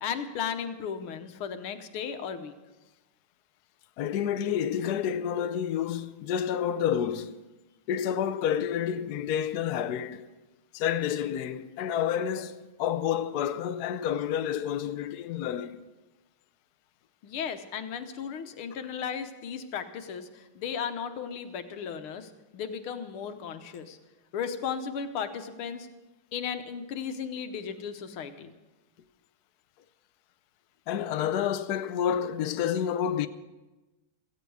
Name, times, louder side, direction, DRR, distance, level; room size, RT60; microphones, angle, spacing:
voice 1, 0.0-2.6 17.2-24.0 24.3-25.9 26.3-28.5, left 7 dB, 85° left, 1.9 m, -35 dB
voice 2, 4.0-7.5 7.9-10.3 10.7-15.8 30.9-33.3, left 9 dB, 65° left, 1.0 m, -29 dB
17.0 x 15.0 x 4.8 m
omnidirectional pair, 2.3 m